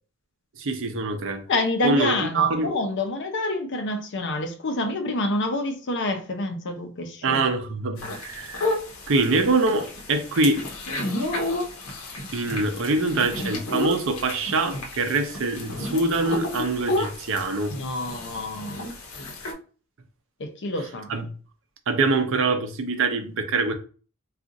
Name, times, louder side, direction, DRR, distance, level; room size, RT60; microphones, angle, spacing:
voice 1, 0.6-1.4 1.8-2.7 7.2-8.7 9.1-10.7 12.3-17.7 21.1-21.3 21.9-23.7, right 3 dB, 65° right, 0.6 m, -24 dB
voice 2, 1.5-7.5 15.7-15.9 17.8-18.9 20.4-21.1, left 2 dB, 60° left, 0.6 m, -27 dB
sound 1, 8.0-19.5, left 2 dB, 85° left, 0.9 m, -32 dB
2.4 x 2.4 x 3.8 m
head